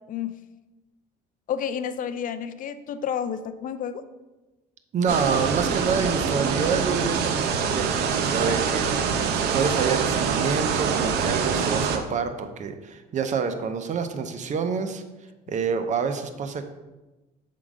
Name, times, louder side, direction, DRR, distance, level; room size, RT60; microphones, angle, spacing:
voice 1, 1.5-4.0 8.5-8.6, left 8 dB, 55° left, 12 dB, 0.4 m, -30 dB
voice 2, 4.9-9.3 9.5-15.0 15.5-16.7, right 6 dB, 45° right, 8 dB, 0.7 m, -27 dB
sound 1, 5.1-12.0, right 6 dB, 80° right, 0.7 m, -25 dB
7.3 x 3.8 x 4.9 m, 1.1 s
cardioid pair, 110°, 17 cm